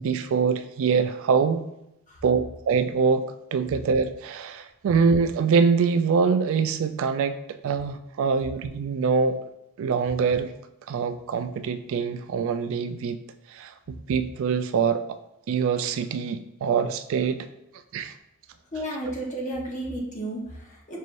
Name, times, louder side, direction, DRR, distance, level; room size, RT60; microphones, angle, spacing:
voice 1, 0.0-1.6 2.2-2.4 2.7-9.4 9.8-10.5 10.9-13.2 13.5-15.2 15.5-17.5 17.9-18.1 19.1-19.2, right 5 dB, 60° right, 10 dB, 0.3 m, -24 dB
voice 2, 18.7-21.0, right 1 dB, 35° left, -3 dB, 0.8 m, -33 dB
5.4 x 3.1 x 2.5 m, 0.84 s
head